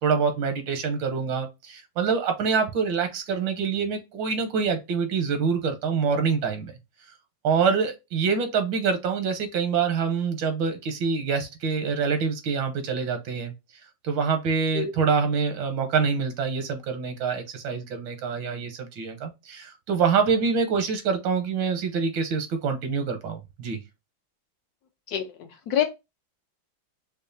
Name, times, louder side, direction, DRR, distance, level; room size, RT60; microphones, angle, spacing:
voice 1, 0.0-6.7 7.4-13.5 14.0-23.8, right 5 dB, 85° right, 1.5 m, -25 dB
voice 2, 25.1-25.8, left 9 dB, 70° left, 1.0 m, -27 dB
5.2 x 2.3 x 2.6 m
omnidirectional pair, 2.1 m